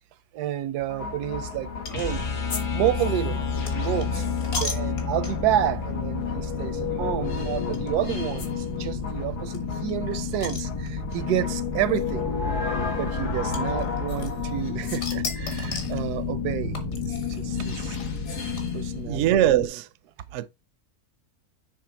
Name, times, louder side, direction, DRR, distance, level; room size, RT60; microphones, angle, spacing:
voice 1, 0.3-2.2 2.7-4.3 4.6-12.3 13.0-16.8 17.3-18.0 18.7-19.3 19.6-19.7, right 12 dB, 85° right, 1.2 m, -30 dB
sound 1, 0.8-19.7, left 5 dB, 80° left, 2.0 m, -30 dB
sound 2, 1.8-2.1 2.5-5.6 6.2-6.4 6.6-6.7 7.7-7.9 8.4-8.5 8.8-8.9 9.0-9.1 9.5-11.2 12.1-12.2 13.5-14.5 14.8-16.0 16.7-19.0, left 3 dB, 55° left, 1.8 m, -36 dB
sound 3, 1.9-8.0, left 4 dB, 40° left, 0.9 m, -32 dB
voice 2, 19.0-19.8 20.3-20.5, right 12 dB, 70° right, 0.7 m, -21 dB
6.7 x 3.8 x 4.4 m
omnidirectional pair, 1.6 m